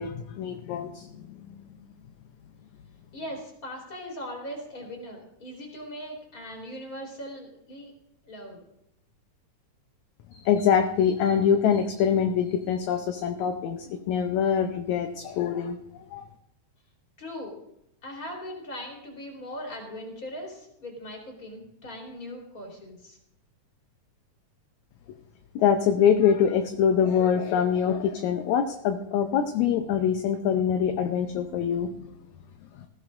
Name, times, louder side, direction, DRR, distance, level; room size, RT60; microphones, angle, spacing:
voice 1, 0.0-1.6 10.3-15.8 16.1-16.2 25.6-32.0, left 8 dB, 75° left, 6 dB, 2.0 m, -24 dB
voice 2, 3.1-7.9 8.2-8.6 17.2-17.5 18.0-23.2, equal, 25° left, 0 dB, 4.0 m, -39 dB
20.0 x 15.5 x 2.6 m, 0.80 s
omnidirectional pair, 3.6 m